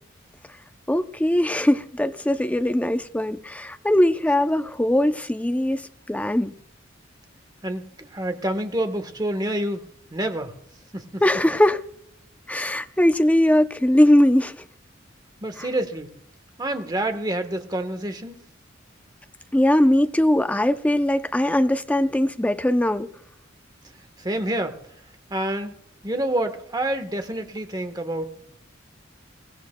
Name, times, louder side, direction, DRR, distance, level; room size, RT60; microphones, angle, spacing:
voice 1, 0.9-6.5 11.2-11.8 12.5-14.6 15.6-15.7 19.5-23.1, left 1 dB, 10° left, 0.5 m, -20 dB
voice 2, 7.6-9.8 10.1-10.5 10.9-11.2 15.4-16.1 16.6-18.4 24.2-24.8 25.3-25.7 26.0-28.4, right 1 dB, 20° right, 1.2 m, -27 dB
22.5 x 16.5 x 2.2 m
head